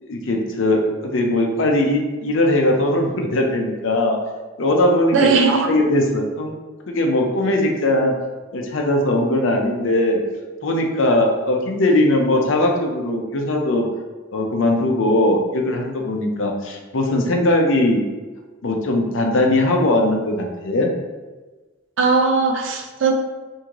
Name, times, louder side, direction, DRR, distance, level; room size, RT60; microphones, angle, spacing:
voice 1, 0.0-4.2 4.6-5.3 5.7-6.5 6.9-8.1 8.5-10.2 10.6-13.9 14.3-18.0 18.6-20.9, left 1 dB, 75° left, 2 dB, 0.6 m, -19 dB
voice 2, 5.1-5.7 22.0-23.1, right 4 dB, 70° right, 4 dB, 0.5 m, -18 dB
3.6 x 2.7 x 3.0 m, 1.2 s
head